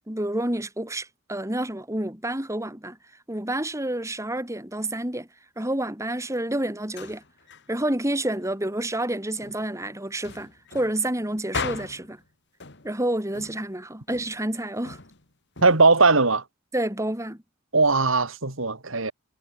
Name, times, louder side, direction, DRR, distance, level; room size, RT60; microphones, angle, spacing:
voice 1, 0.1-3.0 3.3-5.3 5.6-7.2 7.7-12.2 12.8-15.0 16.7-17.4, right 1 dB, 15° right, 3.3 m, -29 dB
sound 1, 6.7-7.7 8.4-9.1 9.4-9.8 10.2-12.3 12.6-13.0 13.3-13.8 14.1-15.9, left 4 dB, 55° left, 2.6 m, -38 dB
voice 2, 15.6-16.4 17.7-19.1, right 3 dB, 70° right, 2.7 m, -19 dB
head